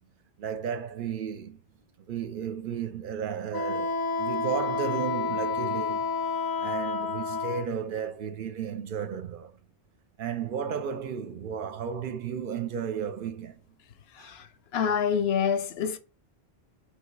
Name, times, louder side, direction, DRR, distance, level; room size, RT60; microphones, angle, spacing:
voice 1, 0.4-1.6 2.1-6.1 6.6-9.6 10.2-13.6 14.2-14.4, right 7 dB, 65° right, 0.7 m, -34 dB
Wind instrument woodwind instrument, 3.5-7.7, left 4 dB, 35° left, 0.4 m, -29 dB
voice 2, 14.7-16.0, left 7 dB, 80° left, 0.8 m, -26 dB
3.2 x 2.9 x 4.5 m
omnidirectional pair, 1.0 m